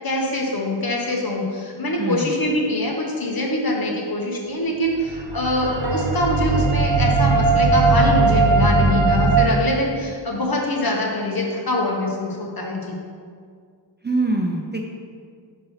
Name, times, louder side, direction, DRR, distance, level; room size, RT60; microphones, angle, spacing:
voice 1, 0.0-12.9, left 1 dB, 55° left, -1 dB, 1.2 m, -24 dB
voice 2, 2.0-2.4 14.0-14.8, right 2 dB, 25° right, 1 dB, 0.5 m, -23 dB
sound 1, 5.0-8.1, right 3 dB, 65° right, 0.7 m, -36 dB
sound 2, 5.1-9.5, right 3 dB, 90° right, 1.1 m, -18 dB
5.5 x 4.0 x 5.6 m, 2.1 s
wide cardioid pair, 55°, 44 cm